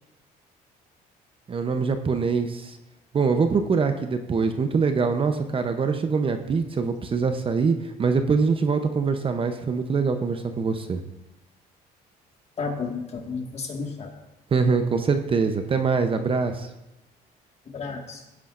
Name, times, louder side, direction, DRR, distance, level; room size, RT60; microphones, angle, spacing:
voice 1, 1.5-2.8 3.1-11.0 14.5-16.7, right 5 dB, 30° right, 7 dB, 0.7 m, -24 dB
voice 2, 12.6-14.1 17.7-18.2, left 4 dB, 40° left, 2 dB, 1.8 m, -32 dB
16.5 x 9.7 x 2.5 m, 0.93 s
cardioid pair, 110°, 17 cm